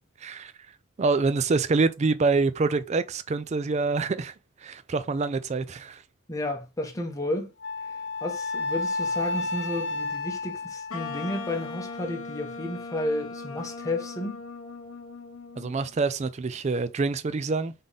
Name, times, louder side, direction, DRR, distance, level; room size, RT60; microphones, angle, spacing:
voice 1, 0.2-0.5 1.0-4.3 4.6-6.0 15.6-17.7, right 4 dB, 30° right, 0.3 m, -26 dB
voice 2, 6.3-7.5 7.8-14.4, left 1 dB, 15° left, 0.8 m, -32 dB
Wind instrument woodwind instrument, 7.6-12.0, left 3 dB, 50° left, 0.4 m, -32 dB
Wind instrument woodwind instrument 2, 10.9-15.9, left 4 dB, 65° left, 0.8 m, -39 dB
3.6 x 3.6 x 3.8 m
head